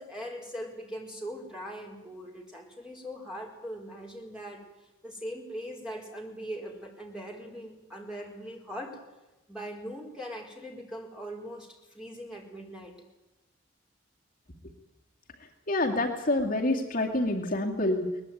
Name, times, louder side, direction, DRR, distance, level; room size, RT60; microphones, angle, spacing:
voice 1, 0.0-4.6 5.0-9.0 9.5-12.9, equal, 5° right, 0 dB, 4.5 m, -40 dB
voice 2, 15.7-18.1, left 1 dB, 40° left, 0 dB, 2.4 m, -27 dB
22.0 x 20.0 x 9.3 m, 0.99 s
head